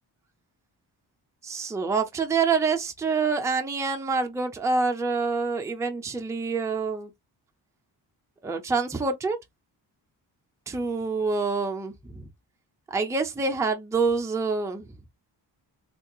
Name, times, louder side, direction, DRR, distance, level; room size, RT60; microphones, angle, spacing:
voice 1, 1.4-7.1 8.4-9.4 10.7-12.3 12.9-14.9, right 4 dB, 5° right, 0.5 m, -26 dB
3.6 x 2.8 x 2.3 m
wide cardioid pair, 125°, 41 cm